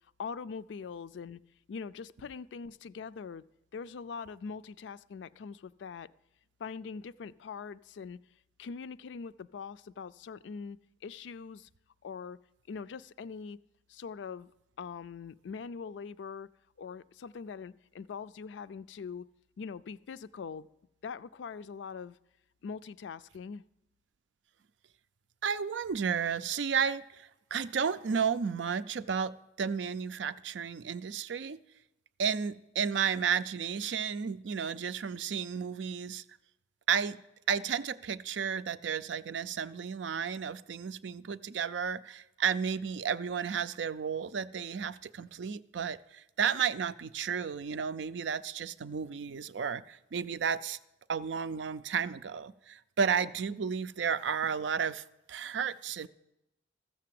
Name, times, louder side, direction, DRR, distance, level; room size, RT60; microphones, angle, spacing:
voice 1, 0.2-1.4 1.7-3.4 3.7-6.1 6.6-8.2 8.6-10.8 11.0-11.7 12.0-12.4 12.7-13.6 13.9-14.5 14.8-16.5 16.8-19.3 19.6-20.7 21.0-22.2 22.6-23.6, left 5 dB, 75° left, 0.4 m, -42 dB
voice 2, 25.4-31.6 32.2-36.2 36.9-37.2 37.5-50.8 51.1-56.1, right 7 dB, 80° right, 0.5 m, -32 dB
14.0 x 6.8 x 7.6 m
head